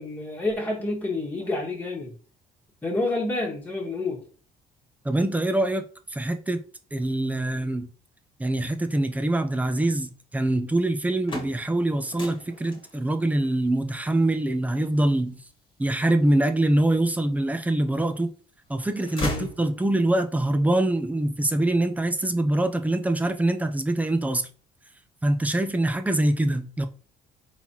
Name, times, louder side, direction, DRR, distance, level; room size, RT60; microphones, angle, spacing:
voice 1, 0.0-2.1 2.8-4.2 19.3-19.5, left 2 dB, 10° left, 1.5 m, -28 dB
voice 2, 5.0-5.9 6.1-6.6 6.9-7.9 8.4-15.4 15.8-18.3 18.7-24.5 25.2-26.9, right 1 dB, 10° right, 0.5 m, -24 dB
sound 1, 11.0-16.9 17.5-18.3 18.6-20.2, left 1 dB, 30° left, 1.4 m, -38 dB
4.1 x 4.1 x 2.9 m
cardioid pair, 110°, 17 cm